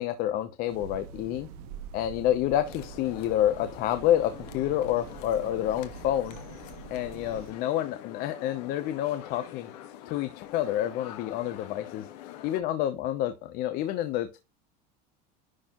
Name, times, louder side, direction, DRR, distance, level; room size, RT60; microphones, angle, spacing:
voice 1, 0.0-1.5 1.9-6.4 6.9-9.7 10.1-12.1 12.4-14.4, left 12 dB, 50° left, 9 dB, 0.8 m, -28 dB
sound 1, 0.7-7.5, right 7 dB, 75° right, 1.5 m, -45 dB
sound 2, 2.6-12.6, left 12 dB, 80° left, 1.5 m, -45 dB
11.0 x 4.4 x 3.0 m, 0.28 s
cardioid pair, 160°, 20 cm